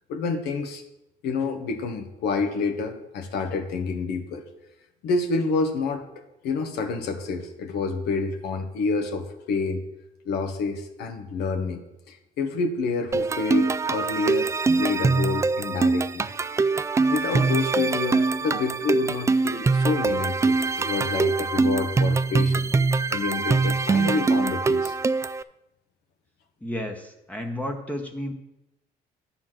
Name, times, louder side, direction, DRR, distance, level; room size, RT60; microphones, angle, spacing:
voice 1, 0.1-0.8 1.2-4.4 5.0-9.8 10.2-11.8 12.1-16.3 17.1-22.7 23.1-24.9, left 4 dB, 80° left, 5 dB, 1.3 m, -28 dB
sound 1, 13.1-25.4, right 4 dB, 15° right, 0.3 m, -23 dB
voice 2, 26.6-28.3, left 1 dB, 10° left, 2 dB, 0.9 m, -32 dB
10.0 x 4.3 x 7.5 m, 0.90 s
cardioid pair, 110°, 17 cm